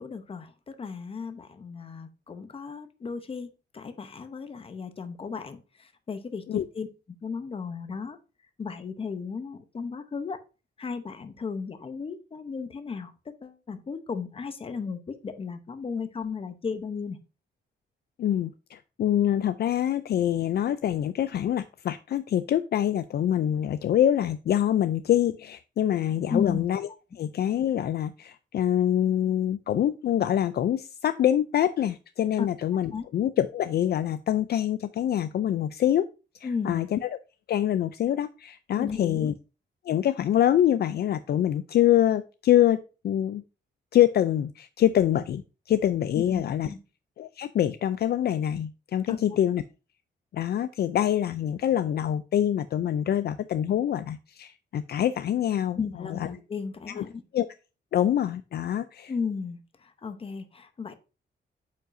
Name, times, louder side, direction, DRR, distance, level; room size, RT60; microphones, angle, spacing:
voice 1, 0.0-3.5 3.7-6.9 7.2-8.2 8.6-10.4 10.8-17.2 26.3-26.7 32.4-32.5 32.9-33.0 36.4-36.9 38.8-39.3 46.1-46.8 49.1-49.2 55.8-57.2 59.1-60.9, left 5 dB, 30° left, 0.8 m, -35 dB
voice 2, 18.2-26.9 27.2-36.1 36.6-37.1 37.5-39.3 39.9-43.4 43.9-45.4 45.7-46.7 47.2-49.6 50.3-55.8 56.2-56.3 57.0-57.1 57.3-57.5 57.9-59.1, left 11 dB, 60° left, 0.4 m, -25 dB
8.8 x 5.2 x 2.6 m
wide cardioid pair, 170°, 19 cm